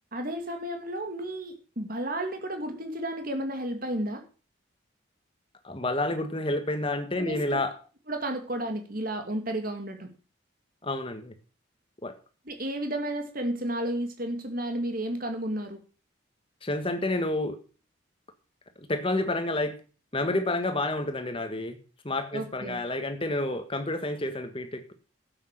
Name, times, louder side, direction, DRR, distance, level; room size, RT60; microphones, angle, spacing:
voice 1, 0.1-4.2 7.2-7.4 8.1-10.1 12.5-15.8 22.3-22.8, right 1 dB, 45° right, 5 dB, 2.3 m, -32 dB
voice 2, 5.6-7.7 10.8-11.3 12.0-12.2 16.6-17.6 18.9-19.8 20.1-21.8 22.0-24.9, left 2 dB, 25° left, 8 dB, 1.6 m, -29 dB
12.0 x 8.2 x 6.6 m, 0.38 s
head